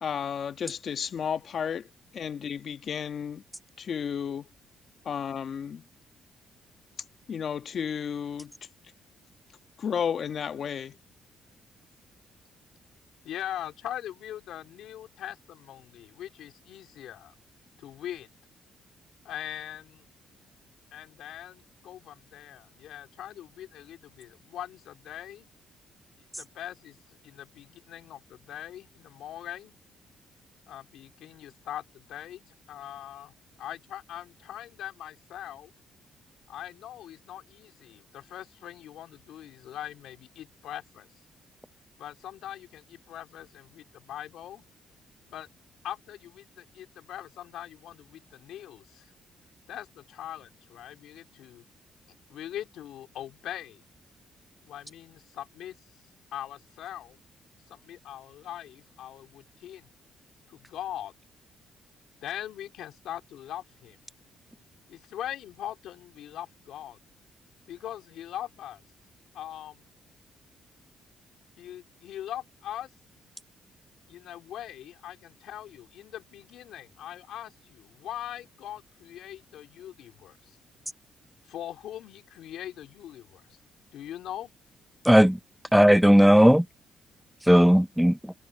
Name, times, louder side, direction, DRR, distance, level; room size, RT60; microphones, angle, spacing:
voice 1, 0.0-3.4 3.8-4.5 5.0-5.8 7.3-8.5 9.8-11.0, left 7 dB, 55° left, 1.3 m, -32 dB
voice 2, 13.2-17.3 17.8-18.3 19.2-20.0 20.9-25.5 26.4-29.7 30.7-32.4 32.7-33.3 33.6-35.7 36.5-41.1 42.0-44.6 45.3-45.5 45.8-49.1 49.7-51.6 52.3-53.8 54.6-55.8 56.3-57.2 57.7-59.9 60.5-61.1 62.2-64.0 64.9-67.0 67.7-68.8 69.3-69.8 71.6-72.9 74.1-80.6 81.4-83.6 83.9-84.5, left 11 dB, 85° left, 3.7 m, -41 dB
voice 3, 85.0-85.4 85.7-86.7 87.5-88.3, equal, ahead, 0.6 m, -17 dB
cardioid pair, 95°, 0 cm